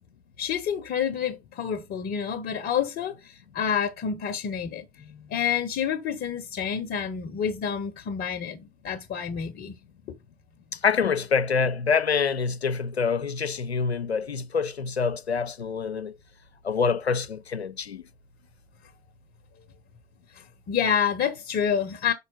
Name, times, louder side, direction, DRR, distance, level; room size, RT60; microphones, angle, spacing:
voice 1, 0.4-9.7 10.1-10.2 20.3-22.1, left 8 dB, 30° left, 0.8 m, -28 dB
voice 2, 10.7-16.1 16.6-18.0, left 5 dB, 85° left, 0.6 m, -26 dB
5.4 x 4.2 x 5.5 m
figure-of-eight pair, 80°, 31 cm